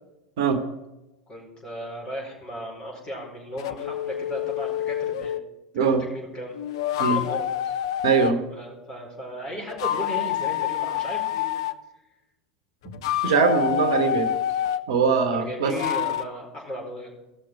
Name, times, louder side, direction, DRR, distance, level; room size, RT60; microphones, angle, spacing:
voice 1, 1.3-5.4 5.7-6.5 7.0-7.5 8.2-11.6 12.8-12.9 15.3-17.1, equal, 30° left, -2 dB, 4.9 m, -36 dB
sound 1, 3.6-5.5 6.5-8.3 9.7-11.8 12.9-14.8 15.7-16.3, left 11 dB, 65° left, 0.5 m, -27 dB
voice 2, 5.7-6.0 7.0-7.2 8.0-8.4 13.2-14.3 14.9-15.8, right 5 dB, 65° right, 8 dB, 1.2 m, -21 dB
16.0 x 6.6 x 4.6 m, 0.99 s
figure-of-eight pair, 80°, 3 cm